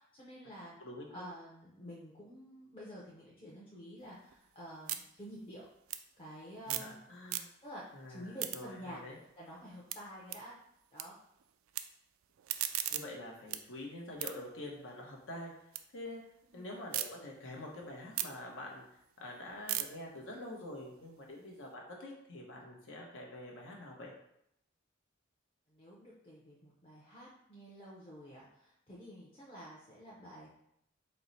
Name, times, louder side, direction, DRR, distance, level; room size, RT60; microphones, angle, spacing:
voice 1, 0.0-0.8 1.1-5.7 6.2-6.9 7.6-9.0 9.4-10.5 10.9-11.1 16.5-16.7 25.7-30.5, equal, 25° left, -7 dB, 0.7 m, -49 dB
voice 2, 0.8-1.2 6.7-7.5 7.9-9.2 12.9-15.5 15.9-16.2 16.5-18.8 19.2-24.1, left 1 dB, 70° left, -1 dB, 0.9 m, -46 dB
sound 1, 4.0-7.0 7.2-7.8 8.2-11.0 11.3-11.8 12.2-15.8 16.2-17.1 17.5-21.7, right 13 dB, 90° right, 0.3 m, -41 dB
4.4 x 2.1 x 4.0 m, 0.77 s
head